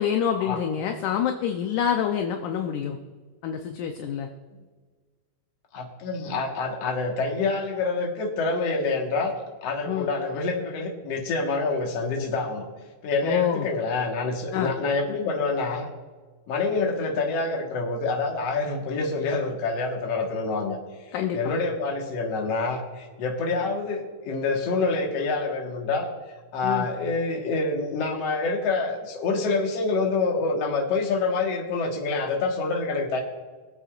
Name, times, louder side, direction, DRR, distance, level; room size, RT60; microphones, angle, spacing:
voice 1, 0.0-3.0 3.4-4.3 9.9-10.1 13.2-13.7 14.5-14.7 21.1-21.6 26.6-26.9, left 8 dB, 75° left, 4 dB, 2.0 m, -26 dB
voice 2, 5.7-9.3 9.6-12.7 13.0-15.9 16.5-20.8 21.3-26.1 26.5-33.2, left 3 dB, 55° left, 0 dB, 2.2 m, -27 dB
23.5 x 8.0 x 2.5 m, 1.4 s
omnidirectional pair, 4.2 m